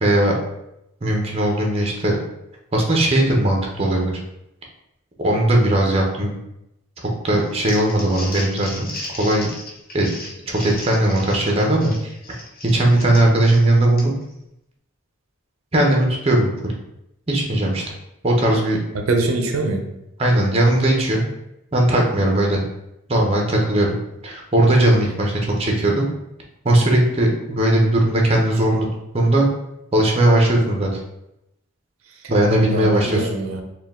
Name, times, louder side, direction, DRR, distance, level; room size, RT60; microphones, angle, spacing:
voice 1, 0.0-0.3 1.0-2.2 2.7-4.1 5.2-6.4 7.0-9.5 9.9-10.1 10.5-12.1 12.7-14.1 15.7-16.7 17.3-17.8 18.2-18.8 20.2-21.2 21.7-22.6 23.1-24.0 24.2-26.1 26.6-28.9 29.1-29.5 29.9-30.9 32.3-33.3, right 1 dB, 30° right, 0 dB, 0.7 m, -18 dB
Crumpling crinkling, 7.4-14.3, left 2 dB, 45° left, 0.8 m, -36 dB
voice 2, 19.1-20.0 32.1-32.3 32.7-33.6, right 2 dB, 90° right, 4 dB, 0.5 m, -23 dB
4.3 x 2.3 x 3.5 m, 0.85 s
head